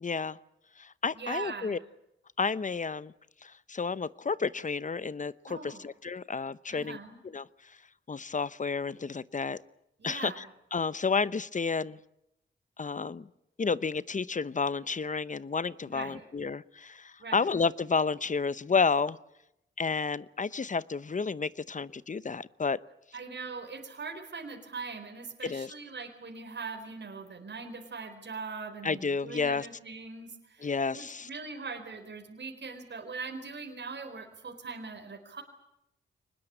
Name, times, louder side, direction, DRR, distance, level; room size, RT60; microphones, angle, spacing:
voice 1, 0.0-0.4 0.8-1.8 2.4-3.1 3.4-7.0 7.2-7.8 8.1-9.6 10.0-10.5 10.7-12.0 12.8-13.3 13.6-19.2 19.8-22.8 25.4-25.7 28.8-29.7 30.6-31.3, left 5 dB, 40° left, 18 dB, 0.8 m, -31 dB
voice 2, 1.1-1.8 5.5-5.8 6.7-7.2 10.0-10.4 15.9-16.2 17.2-17.5 23.1-35.4, right 4 dB, 60° right, 5 dB, 4.3 m, -41 dB
23.5 x 20.5 x 8.8 m, 0.82 s
cardioid pair, 75°, 20 cm